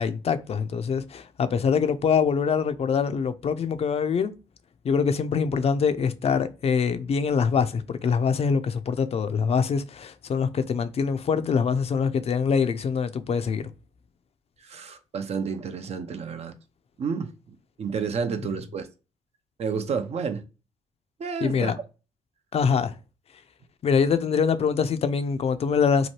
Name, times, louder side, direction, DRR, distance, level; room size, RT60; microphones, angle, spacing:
voice 1, 0.0-4.3 4.8-13.6 21.4-21.8 22.5-23.0 23.8-26.1, left 6 dB, 45° left, 0.4 m, -24 dB
voice 2, 14.6-16.5 17.0-18.9 19.6-20.4 21.2-21.7, right 5 dB, 50° right, 0.5 m, -30 dB
2.8 x 2.2 x 3.0 m
hypercardioid pair, 50°, 14 cm